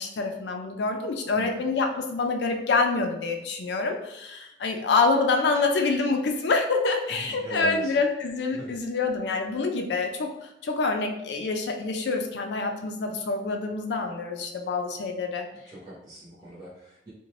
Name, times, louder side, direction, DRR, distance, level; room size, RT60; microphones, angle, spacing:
voice 1, 0.0-15.4, left 3 dB, 75° left, 4 dB, 0.4 m, -26 dB
voice 2, 1.3-1.7 7.2-7.9 8.5-8.7 15.7-17.1, right 1 dB, 25° right, -9 dB, 0.7 m, -39 dB
2.5 x 2.1 x 3.1 m, 0.84 s
head